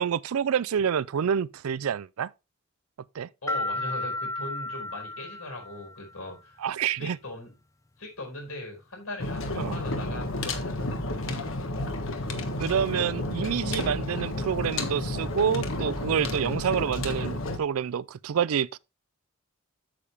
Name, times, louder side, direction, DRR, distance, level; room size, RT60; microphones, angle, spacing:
voice 1, 0.0-2.3 3.1-3.3 6.6-7.2 9.6-9.8 12.6-18.8, right 8 dB, 85° right, 0.4 m, -28 dB
voice 2, 3.4-6.6 7.0-7.5 8.0-11.0, left 1 dB, 85° left, 4.8 m, -39 dB
sound 1, 3.5-6.1, left 2 dB, 15° left, 0.4 m, -33 dB
sound 2, 9.2-17.6, left 2 dB, 70° left, 1.3 m, -31 dB
8.7 x 7.0 x 3.4 m
head